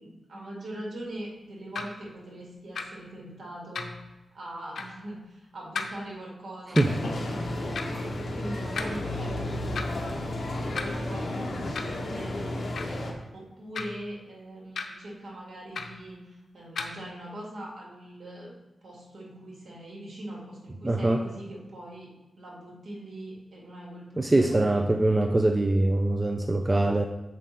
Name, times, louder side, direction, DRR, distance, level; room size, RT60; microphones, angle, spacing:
voice 1, 0.0-3.9 4.3-12.6 13.3-22.1 22.4-25.0, right 1 dB, 65° right, -3 dB, 2.3 m, -42 dB
sound 1, 1.7-1.9 2.7-2.9 3.7-4.0 4.7-4.9 5.7-5.9 6.7-6.9 7.7-7.9 8.7-8.9 9.7-10.0 10.7-10.9 11.7-12.0 12.7-13.0 13.7-14.0 14.7-14.9 15.7-16.0 16.7-16.9, left 5 dB, 70° left, 0.8 m, -34 dB
sound 2, 6.7-13.1, left 1 dB, 45° left, 1.2 m, -32 dB
voice 2, 20.8-21.2 24.2-27.1, right 2 dB, 20° right, 6 dB, 0.4 m, -23 dB
7.3 x 5.3 x 4.3 m, 1.1 s
wide cardioid pair, 145°, 0 cm